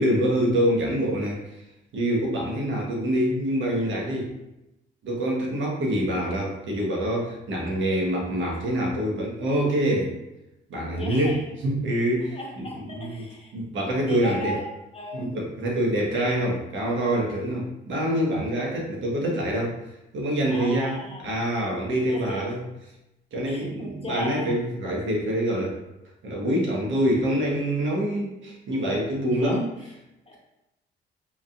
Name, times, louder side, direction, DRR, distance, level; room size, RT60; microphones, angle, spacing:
voice 1, 0.0-1.4 1.9-4.3 5.0-10.2 10.7-11.3 11.6-12.6 12.9-13.2 13.5-14.5 15.1-19.8 20.1-22.6 23.3-25.8 26.2-29.6, equal, 70° right, -2 dB, 1.3 m, -25 dB
voice 2, 10.9-11.5 12.3-13.5 14.1-15.3 20.5-21.4 22.0-22.5 23.4-24.6 29.3-29.6 30.2-30.4, left 1 dB, 30° left, -1 dB, 1.1 m, -37 dB
4.9 x 3.5 x 2.5 m, 0.92 s
cardioid pair, 90°, 20 cm